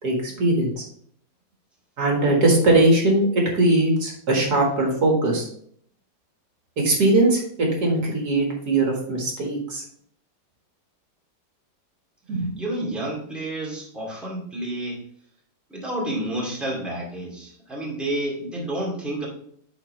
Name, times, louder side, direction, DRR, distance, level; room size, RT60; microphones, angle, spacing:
voice 1, 0.0-0.8 2.0-3.3 3.5-5.5 6.8-9.8 12.3-12.5, right 2 dB, 65° right, -1 dB, 2.1 m, -20 dB
voice 2, 12.6-15.0 15.7-19.3, right 1 dB, ahead, -4 dB, 2.0 m, -30 dB
10.0 x 4.0 x 3.2 m, 0.64 s
omnidirectional pair, 1.9 m